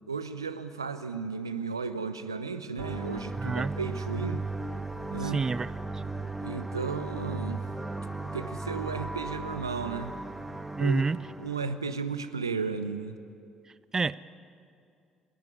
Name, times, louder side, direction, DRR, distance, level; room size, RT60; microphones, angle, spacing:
voice 1, 0.1-4.4 5.1-5.4 6.4-7.6 8.3-10.1 10.8-11.0 11.4-13.2, right 5 dB, 85° right, 11 dB, 0.7 m, -34 dB
sound 1, 2.8-11.8, right 2 dB, 10° right, 1.4 m, -36 dB
voice 2, 3.4-3.7 5.2-6.0 10.8-11.2 13.9-14.1, right 4 dB, 25° right, 18 dB, 0.5 m, -28 dB
29.0 x 10.5 x 9.7 m, 2.4 s
figure-of-eight pair, 50°, 2 cm